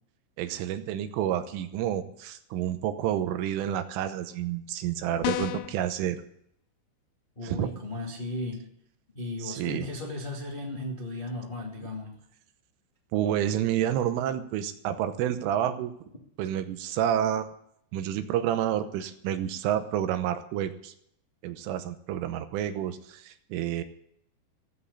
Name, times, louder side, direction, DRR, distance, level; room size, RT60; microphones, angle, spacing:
voice 1, 0.4-6.2 7.4-7.7 9.4-9.9 13.1-15.9 16.4-17.5 17.9-20.9 21.4-23.8, right 10 dB, 80° right, 9 dB, 3.4 m, -29 dB
sound 1, 5.2-5.8, left 14 dB, 85° left, 2.6 m, -30 dB
voice 2, 7.3-8.6 9.1-12.1, left 2 dB, 25° left, -2 dB, 0.9 m, -35 dB
15.5 x 8.4 x 8.4 m, 0.71 s
omnidirectional pair, 5.8 m